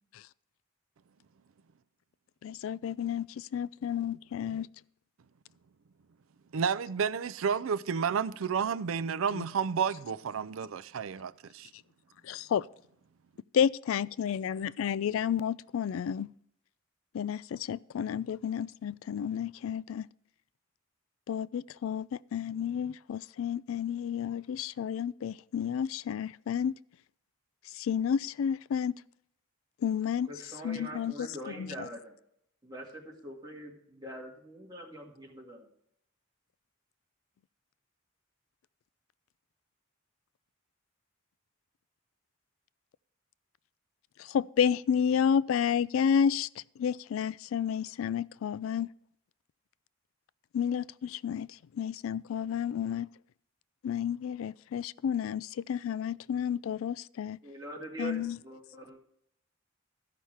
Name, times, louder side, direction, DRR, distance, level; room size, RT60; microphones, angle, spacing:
voice 1, 2.4-4.7 9.3-9.4 12.2-12.6 13.5-16.3 17.1-20.1 21.3-26.8 27.7-29.0 29.8-30.3 30.6-31.3 31.6-31.7 44.2-46.5 46.8-48.9 50.5-51.5 51.7-53.1 53.8-57.4 58.0-58.4, left 8 dB, 85° left, 0.3 m, -31 dB
voice 2, 6.5-11.7, right 6 dB, 85° right, 0.4 m, -31 dB
voice 3, 30.3-32.1 32.6-35.7 57.4-59.0, right 1 dB, 20° right, 2.2 m, -43 dB
13.5 x 5.7 x 4.7 m
head